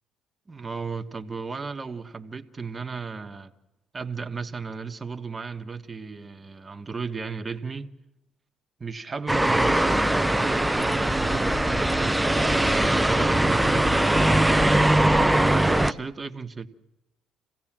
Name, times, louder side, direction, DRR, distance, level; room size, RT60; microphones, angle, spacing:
voice 1, 0.5-3.5 3.9-7.9 8.8-12.7 13.1-15.0 15.5-16.7, right 4 dB, 30° right, 1.4 m, -35 dB
sound 1, 9.3-15.9, right 1 dB, 5° right, 0.8 m, -21 dB
28.0 x 16.5 x 7.5 m
supercardioid pair, 75°, 0 cm